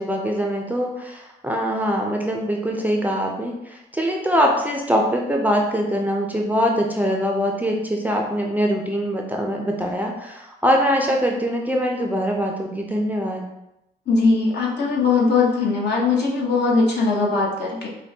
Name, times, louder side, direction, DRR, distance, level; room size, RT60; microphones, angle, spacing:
voice 1, 0.0-13.5, equal, 10° right, 0 dB, 0.5 m, -23 dB
voice 2, 14.1-17.9, left 4 dB, 60° left, -2 dB, 1.0 m, -20 dB
5.2 x 2.2 x 2.7 m, 0.89 s
cardioid pair, 90°, 20 cm